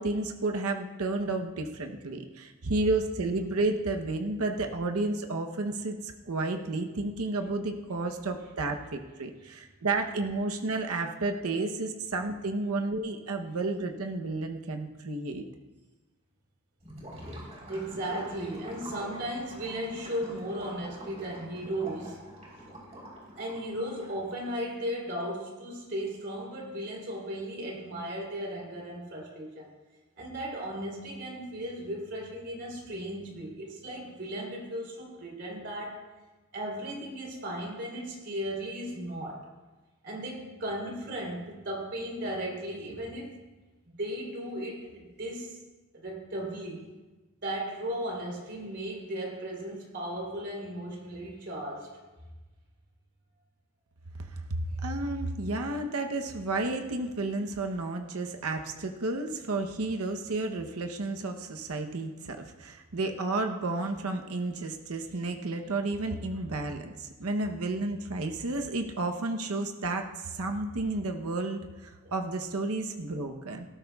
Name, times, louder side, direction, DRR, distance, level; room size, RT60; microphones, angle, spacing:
voice 1, 0.0-15.4 54.2-73.7, right 2 dB, 85° right, 4 dB, 0.9 m, -32 dB
Gurgling / Liquid, 16.8-24.5, equal, 30° right, 3.8 m, -45 dB
voice 2, 17.1-22.2 23.4-29.7 30.2-36.0 36.5-39.4 40.0-43.4 43.9-45.6 45.9-46.9 47.4-51.9 72.0-72.1, right 1 dB, 50° right, -2 dB, 3.5 m, -36 dB
18.0 x 13.5 x 2.3 m, 1.2 s
head